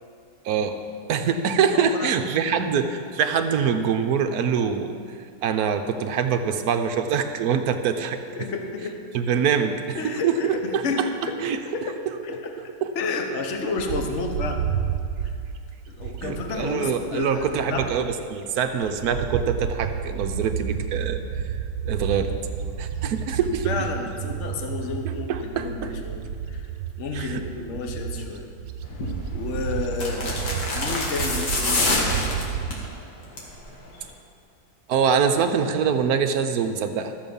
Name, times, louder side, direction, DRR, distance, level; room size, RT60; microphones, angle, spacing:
voice 1, 0.4-0.7 1.1-4.9 5.4-8.2 9.1-10.8 11.2-11.6 16.2-21.4 21.8-22.3 22.8-23.7 25.0-25.9 27.1-27.4 34.9-37.1, right 7 dB, 65° right, 7 dB, 1.1 m, -24 dB
voice 2, 1.7-2.1 8.4-9.0 10.0-14.6 15.2-15.3 15.9-17.9 23.6-26.6 27.0-28.5 29.3-32.4, left 3 dB, 45° left, 4 dB, 1.2 m, -31 dB
Bird, 13.8-18.3 18.6-32.8, right 8 dB, 85° right, 1.3 m, -31 dB
sound 1, 28.9-29.2 29.9-32.9 33.2-33.6 33.9-34.0, left 2 dB, 70° left, 2.3 m, -26 dB
13.5 x 7.7 x 5.3 m, 2.3 s
omnidirectional pair, 1.9 m